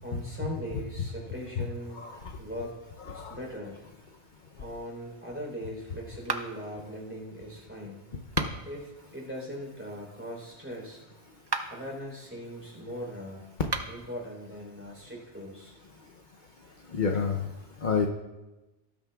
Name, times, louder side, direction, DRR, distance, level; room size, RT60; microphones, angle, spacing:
voice 1, 0.0-2.0 2.4-2.8 3.1-3.8 4.5-8.0 8.7-8.8 9.1-11.0 11.7-13.4 13.9-15.7, equal, 10° right, -2 dB, 3.6 m, -40 dB
voice 2, 1.9-2.3 3.1-3.4 16.9-17.5 17.8-18.1, left 5 dB, 50° left, 2 dB, 0.8 m, -29 dB
sound 1, 6.2-6.8 8.2-8.8 11.4-11.9 13.6-14.1, right 3 dB, 30° right, 0.5 m, -34 dB
18.5 x 8.9 x 2.3 m, 1.1 s
omnidirectional pair, 1.2 m